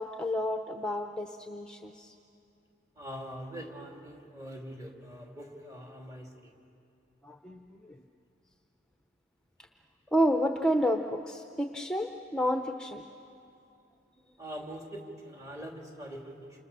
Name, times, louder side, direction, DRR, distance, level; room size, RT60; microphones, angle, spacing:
voice 1, 0.0-2.1 7.2-8.0 10.1-13.0, equal, 5° left, 4 dB, 0.8 m, -30 dB
voice 2, 3.0-6.5 14.4-16.6, equal, 20° right, 1 dB, 3.0 m, -43 dB
29.0 x 26.5 x 6.8 m, 2.7 s
head